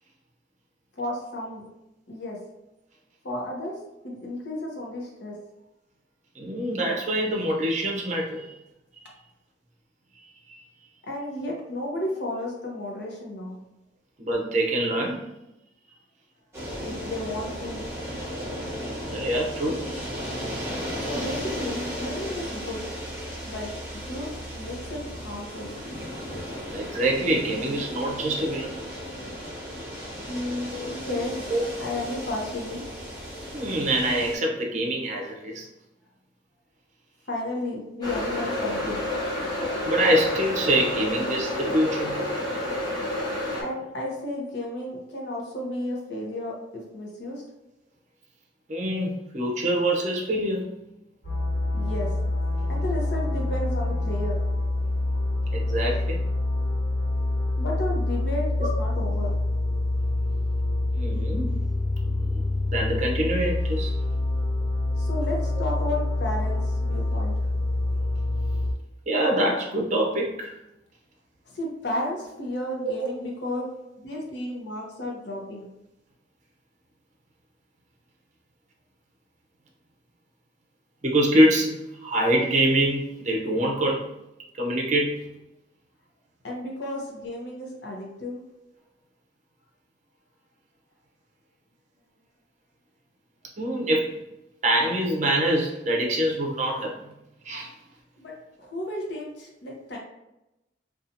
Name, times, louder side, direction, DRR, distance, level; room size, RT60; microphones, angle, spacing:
voice 1, 1.0-1.6 2.1-2.4 3.2-3.8 4.0-5.4 11.0-13.6 16.8-17.8 21.0-22.8 23.4-23.7 24.1-24.3 24.5-25.7 30.3-31.4 31.8-32.8 37.3-39.1 43.6-47.4 51.7-52.1 52.7-54.4 57.6-59.3 65.0-67.3 71.5-73.6 74.0-75.7 86.4-88.4 98.2-100.0, left 1 dB, 65° left, -1 dB, 0.7 m, -33 dB
voice 2, 6.4-8.5 10.5-10.6 14.2-15.2 19.1-20.0 26.7-28.7 30.7-30.9 31.5-31.6 33.5-35.7 39.8-42.2 48.7-50.7 55.5-56.2 58.6-58.7 60.9-61.5 62.0-62.4 62.7-63.9 69.1-70.5 73.0-73.1 81.0-84.1 84.6-85.2 93.6-94.1 94.6-97.1 97.4-97.7, right 1 dB, 40° right, 0 dB, 0.5 m, -25 dB
sound 1, 16.5-34.4, equal, 15° right, 0.8 m, -35 dB
sound 2, 38.0-43.6, left 1 dB, 20° left, 0.6 m, -29 dB
sound 3, 51.2-68.7, left 2 dB, 90° left, 1.1 m, -26 dB
2.6 x 2.3 x 2.6 m, 0.91 s
head